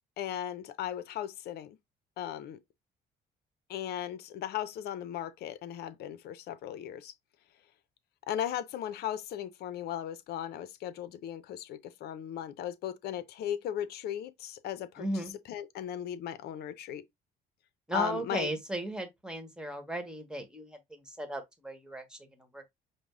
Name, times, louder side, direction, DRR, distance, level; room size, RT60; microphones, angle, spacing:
voice 1, 0.2-1.8 2.2-2.6 3.7-7.1 8.3-15.1 15.5-17.0 17.9-18.5, left 10 dB, 70° left, 0.6 m, -37 dB
voice 2, 15.0-15.3 17.9-22.7, right 1 dB, 5° right, 1.3 m, -36 dB
5.2 x 2.1 x 3.7 m
cardioid pair, 110°, 17 cm